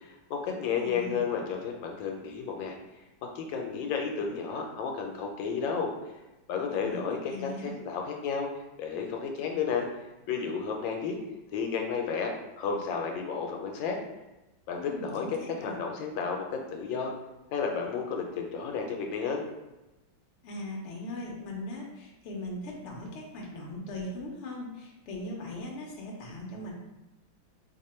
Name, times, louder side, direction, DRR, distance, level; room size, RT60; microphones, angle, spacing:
voice 1, 0.0-2.8 3.3-5.9 6.5-8.5 8.8-9.9 10.3-11.2 11.5-14.0 14.7-15.3 15.6-17.1 17.5-19.4, left 6 dB, 80° left, 2 dB, 1.3 m, -32 dB
voice 2, 0.6-1.2 6.7-7.7 14.8-15.8 20.4-26.7, left 1 dB, 60° left, -1 dB, 0.7 m, -39 dB
3.1 x 2.2 x 4.2 m, 1.0 s
omnidirectional pair, 2.1 m